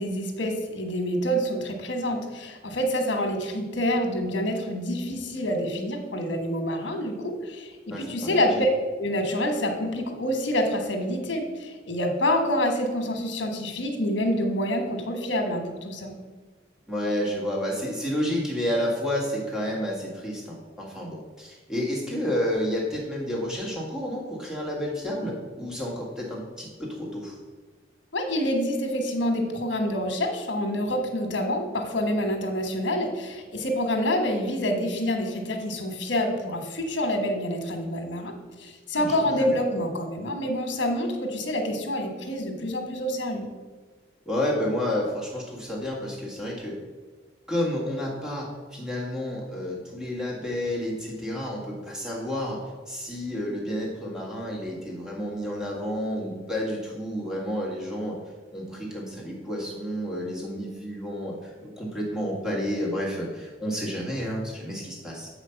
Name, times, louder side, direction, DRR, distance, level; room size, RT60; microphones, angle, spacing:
voice 1, 0.0-8.7 9.0-16.1 28.1-38.3 38.6-43.5, equal, 70° left, 4 dB, 1.2 m, -27 dB
voice 2, 7.9-8.6 16.9-27.4 38.9-39.5 44.2-46.8 47.5-58.2 58.5-65.3, left 1 dB, 5° right, -3 dB, 1.6 m, -30 dB
7.1 x 5.0 x 5.7 m, 1.3 s
head